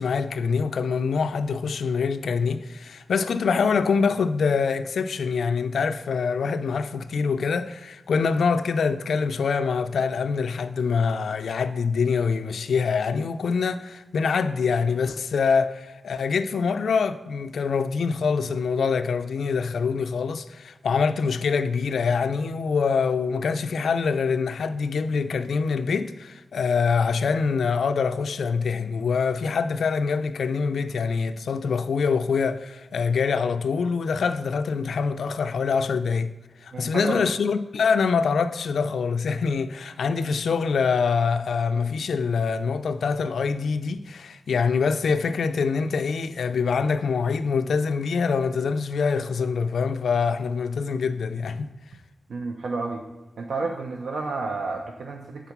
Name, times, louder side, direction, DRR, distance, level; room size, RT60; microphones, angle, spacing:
voice 1, 0.0-36.3 36.6-51.7, left 5 dB, 85° left, 0.4 m, -25 dB
voice 2, 36.7-37.3 52.3-53.0 53.4-55.5, right 3 dB, 85° right, 0.6 m, -30 dB
8.2 x 3.8 x 5.9 m
wide cardioid pair, 140°, 0 cm